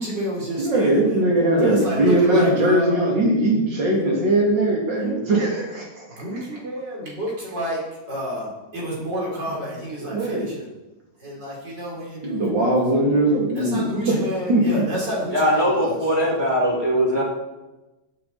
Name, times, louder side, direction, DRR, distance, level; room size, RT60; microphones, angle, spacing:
voice 1, 0.0-1.3 1.6-2.9 3.9-4.2 5.0-5.2 6.1-7.8 8.1-10.7 11.2-12.8 13.5-16.0, equal, 75° right, -4 dB, 4.8 m, -30 dB
voice 2, 0.6-6.1 10.1-10.5 12.2-14.2 14.5-14.6, right 1 dB, 90° right, -2 dB, 3.6 m, -20 dB
voice 3, 15.3-17.2, equal, 15° right, -3 dB, 2.9 m, -20 dB
16.0 x 8.8 x 4.3 m, 1.1 s
omnidirectional pair, 1.9 m